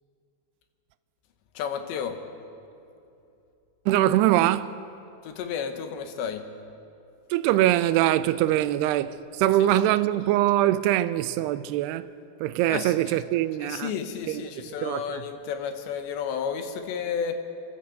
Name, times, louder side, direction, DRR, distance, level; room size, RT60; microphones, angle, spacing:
voice 1, 1.5-2.2 5.2-6.5 9.6-9.8 12.7-13.2 13.6-17.4, left 7 dB, 80° left, 3.4 m, -32 dB
voice 2, 3.9-4.7 7.3-12.1 12.4-13.9 14.3-14.4 14.8-15.2, right 14 dB, 80° right, 2.5 m, -23 dB
28.0 x 12.5 x 7.8 m
omnidirectional pair, 5.0 m